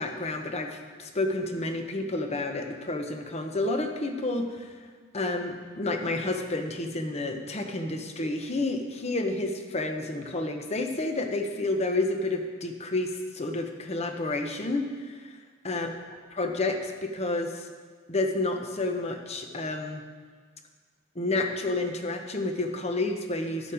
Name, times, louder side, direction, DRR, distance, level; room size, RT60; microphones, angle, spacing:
voice 1, 0.0-4.7 5.1-15.4 15.6-15.9 16.4-17.7 18.1-20.0 21.2-23.7, left 2 dB, 35° left, 5 dB, 0.9 m, -30 dB
11.0 x 7.4 x 5.0 m, 1.5 s
head